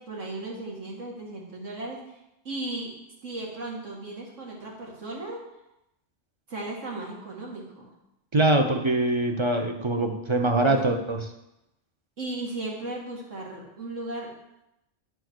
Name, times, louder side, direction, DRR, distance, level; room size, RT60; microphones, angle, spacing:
voice 1, 0.0-2.0 2.4-2.9 3.2-5.4 6.5-7.9 10.6-10.8 12.2-14.3, right 2 dB, 75° right, -2 dB, 2.5 m, -36 dB
voice 2, 8.3-11.3, right 2 dB, 30° right, 4 dB, 0.7 m, -23 dB
9.9 x 4.6 x 6.1 m, 0.87 s
omnidirectional pair, 1.3 m